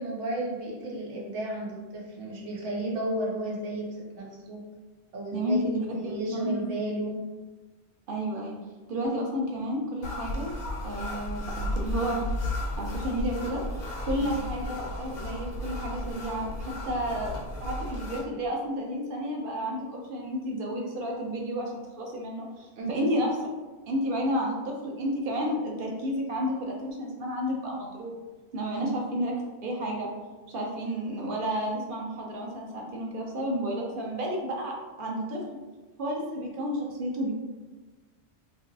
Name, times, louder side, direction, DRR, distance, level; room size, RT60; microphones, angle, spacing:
voice 1, 0.0-4.6 5.1-5.6 5.9-7.2 14.2-14.3 22.8-23.1 28.7-29.0, right 1 dB, 90° right, -3 dB, 1.0 m, -33 dB
voice 2, 5.3-6.6 8.1-8.6 8.9-10.5 10.8-11.4 11.8-12.2 12.7-13.6 14.0-23.3 23.9-28.1 28.5-29.3 29.6-30.1 30.5-35.4 36.0-37.3, equal, 55° right, -1 dB, 0.7 m, -31 dB
sound 1, 10.0-18.2, left 1 dB, 60° left, 0.7 m, -34 dB
2.9 x 2.5 x 2.6 m, 1.2 s
omnidirectional pair, 1.2 m